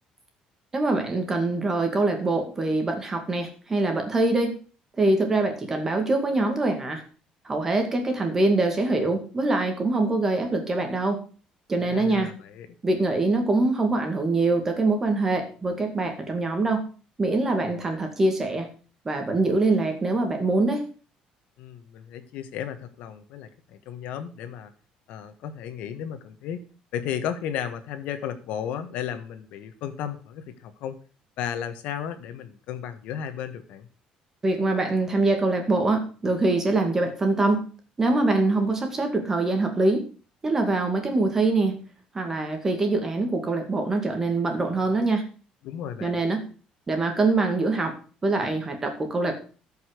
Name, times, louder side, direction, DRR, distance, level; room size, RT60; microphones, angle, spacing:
voice 1, 0.7-4.5 5.0-7.0 7.4-11.2 11.7-12.4 12.8-16.8 17.2-18.7 19.0-20.9 34.4-37.6 38.0-40.0 40.4-41.7 42.1-45.2 46.0-46.4 46.9-49.4, right 2 dB, 15° right, 5 dB, 2.1 m, -24 dB
voice 2, 11.9-12.7 21.6-24.7 25.1-26.6 26.9-31.0 31.4-33.9 44.7-44.8 45.6-46.2, left 9 dB, 70° left, 8 dB, 1.5 m, -34 dB
13.0 x 5.7 x 6.6 m, 0.38 s
cardioid pair, 175°, 2 cm